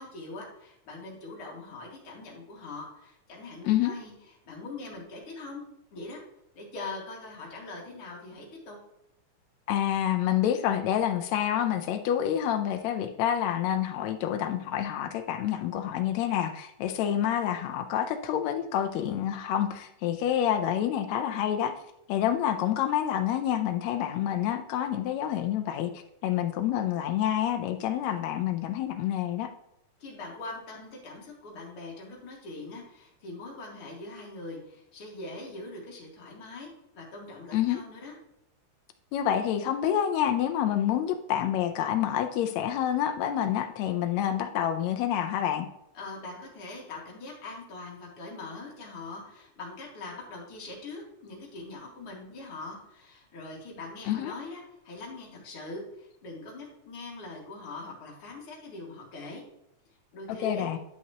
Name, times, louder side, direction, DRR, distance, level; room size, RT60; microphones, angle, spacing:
voice 1, 0.0-4.1 4.4-5.6 5.9-6.2 6.5-8.8 30.0-36.7 36.9-38.2 45.9-59.4 60.1-60.7, left 2 dB, 50° left, -2 dB, 2.6 m, -42 dB
voice 2, 9.7-21.7 22.1-29.5 37.5-37.8 39.1-45.7 54.1-54.3 60.3-60.8, left 10 dB, 75° left, 7 dB, 1.7 m, -28 dB
10.5 x 5.7 x 2.9 m, 0.81 s
omnidirectional pair, 3.5 m